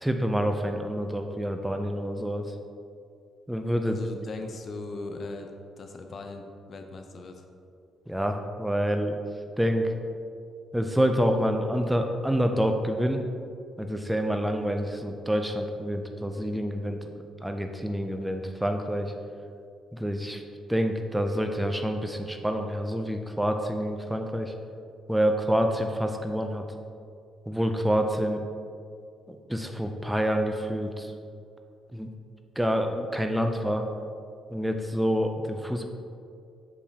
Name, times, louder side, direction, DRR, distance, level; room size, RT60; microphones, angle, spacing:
voice 1, 0.0-2.5 3.5-4.0 8.1-9.2 9.6-9.9 10.7-13.2 13.8-19.1 19.9-20.4 20.7-24.5 25.1-26.6 27.5-28.4 29.3-31.1 31.9-32.1 32.6-33.9 34.5-35.9, equal, 5° right, 5 dB, 0.4 m, -27 dB
voice 2, 3.8-5.5 5.8-7.4, left 3 dB, 50° left, 5 dB, 0.6 m, -39 dB
6.6 x 5.3 x 2.8 m, 2.4 s
cardioid pair, 90°, 0 cm